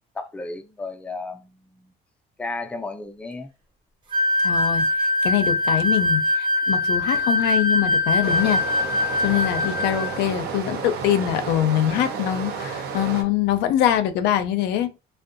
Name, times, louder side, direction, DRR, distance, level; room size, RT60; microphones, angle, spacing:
voice 1, 0.1-1.9 2.4-3.5, left 3 dB, 5° left, 0.3 m, -34 dB
sound 1, 4.1-10.2, left 2 dB, 30° right, 0.6 m, -22 dB
voice 2, 4.4-4.9 5.2-8.6 9.2-14.9, left 11 dB, 85° left, 0.4 m, -23 dB
Stream, 8.2-13.2, right 5 dB, 70° right, 0.6 m, -31 dB
2.6 x 2.2 x 2.5 m
cardioid pair, 110°, 17 cm